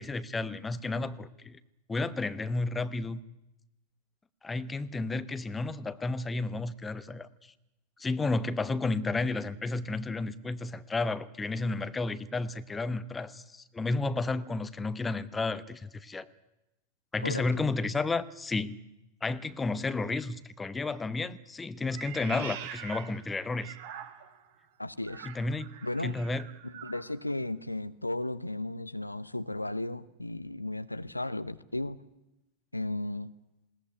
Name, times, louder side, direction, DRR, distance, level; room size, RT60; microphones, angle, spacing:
voice 1, 0.0-1.6 1.9-3.2 4.4-7.3 8.0-16.3 17.1-18.8 19.2-23.7 25.2-25.7 26.0-26.5, left 3 dB, 15° left, 0.9 m, -32 dB
Meow, 21.9-24.5 25.0-27.1, right 9 dB, 50° right, 1.9 m, -44 dB
voice 2, 24.8-25.3 25.8-26.2 26.6-32.0 32.7-33.3, left 1 dB, 85° left, 0.7 m, -35 dB
20.5 x 17.5 x 9.5 m
figure-of-eight pair, 90°, 0 cm